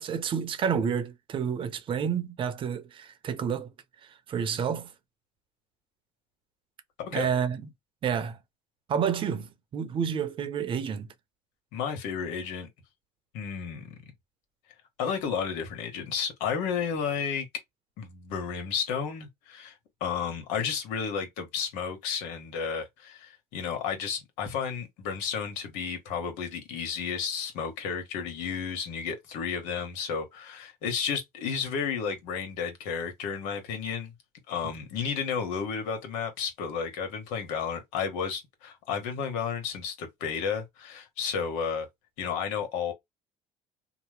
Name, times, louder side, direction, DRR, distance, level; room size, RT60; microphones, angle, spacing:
voice 1, 0.0-3.7 4.0-4.9 7.1-7.6 8.0-8.4 8.9-11.1, right 7 dB, 45° right, 0.8 m, -29 dB
voice 2, 11.7-12.7 13.3-13.9 15.0-17.5 18.0-34.1 34.5-41.9 42.2-42.9, left 6 dB, 85° left, 1.3 m, -32 dB
3.0 x 2.1 x 3.2 m
cardioid pair, 105°, 12 cm